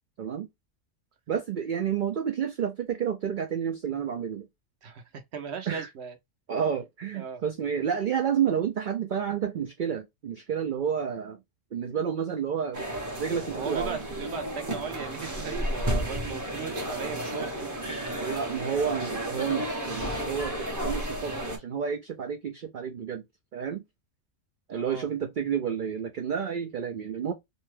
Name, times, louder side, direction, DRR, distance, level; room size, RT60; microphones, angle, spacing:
voice 1, 1.3-4.5 5.7-5.9 6.5-11.4 11.7-12.9 13.2-14.0 18.2-23.2 23.5-23.8 24.7-27.3, right 7 dB, 80° right, 0.4 m, -30 dB
voice 2, 5.3-6.1 7.1-7.4 13.5-18.4 24.7-25.1, right 6 dB, 60° right, 0.8 m, -37 dB
sound 1, 12.7-21.6, equal, 20° right, 0.6 m, -32 dB
2.6 x 2.2 x 3.2 m
omnidirectional pair, 1.4 m